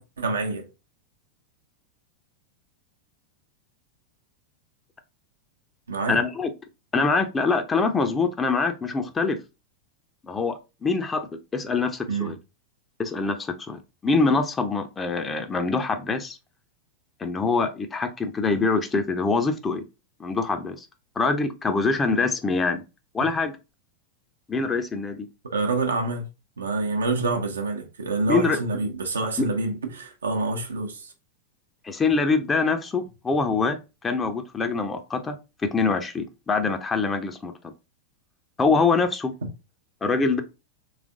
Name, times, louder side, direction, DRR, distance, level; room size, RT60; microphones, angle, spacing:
voice 1, 0.2-0.7 5.9-6.2 12.1-12.3 25.4-26.2 26.6-31.1, right 3 dB, 70° right, 0.9 m, -27 dB
voice 2, 6.1-6.5 6.9-9.4 10.2-12.4 13.0-16.4 17.2-19.8 20.2-20.9 21.2-22.8 23.1-23.5 24.5-25.3 28.3-28.6 29.4-29.5 31.8-33.8 34.0-35.4 35.6-37.7 38.6-39.3 40.0-40.4, left 4 dB, 15° left, 0.7 m, -24 dB
3.4 x 3.3 x 3.7 m
figure-of-eight pair, 90°, 0 cm